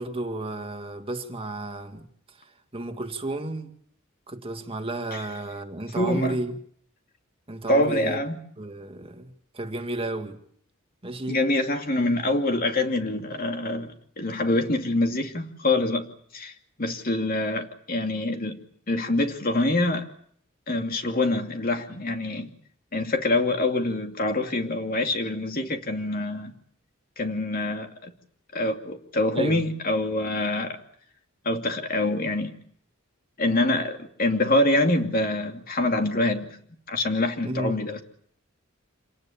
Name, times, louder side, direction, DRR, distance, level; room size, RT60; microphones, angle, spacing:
voice 1, 0.0-3.7 4.3-6.6 7.5-8.2 8.6-10.4 11.0-11.4 29.3-29.6 37.4-37.8, right 2 dB, 25° right, 2.1 m, -33 dB
voice 2, 6.0-6.4 7.7-8.4 11.3-16.1 16.3-16.5 16.8-18.6 18.9-20.1 20.7-22.5 22.9-26.5 27.2-28.1 28.5-30.8 31.4-32.5 33.4-36.6 36.9-38.0, left 2 dB, 45° left, 2.6 m, -25 dB
27.5 x 18.5 x 8.7 m
head